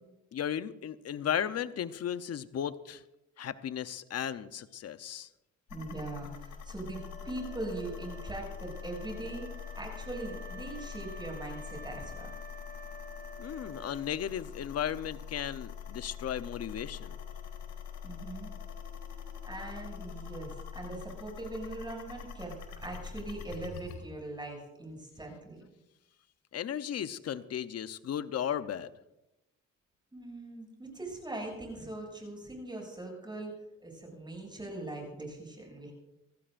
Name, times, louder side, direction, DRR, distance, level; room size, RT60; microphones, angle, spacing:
voice 1, 0.3-3.0 3.4-5.3 13.4-17.1 26.5-28.9, left 9 dB, 55° left, 13 dB, 0.9 m, -35 dB
sound 1, 5.7-24.0, left 7 dB, 80° left, 3.6 m, -44 dB
voice 2, 5.7-9.5 9.8-12.3 18.0-18.5 19.4-25.6 30.1-33.5 33.8-35.9, right 2 dB, 15° right, 0 dB, 7.1 m, -41 dB
Wind instrument woodwind instrument, 6.9-14.4, equal, 30° left, 1.0 m, -50 dB
27.5 x 15.0 x 2.6 m, 0.92 s
cardioid pair, 90°, 30 cm